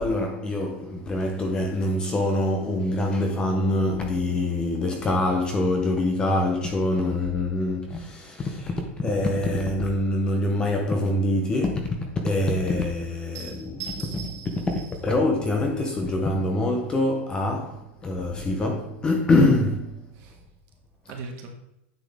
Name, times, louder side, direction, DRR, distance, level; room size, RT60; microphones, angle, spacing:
voice 1, 0.0-13.8 14.7-14.8 15.0-20.1, left 2 dB, 10° left, 0.7 m, -24 dB
voice 2, 13.3-14.9 20.2-20.4 21.1-21.5, right 6 dB, 35° right, 1.6 m, -39 dB
9.5 x 6.0 x 3.5 m
supercardioid pair, 170°, 7 cm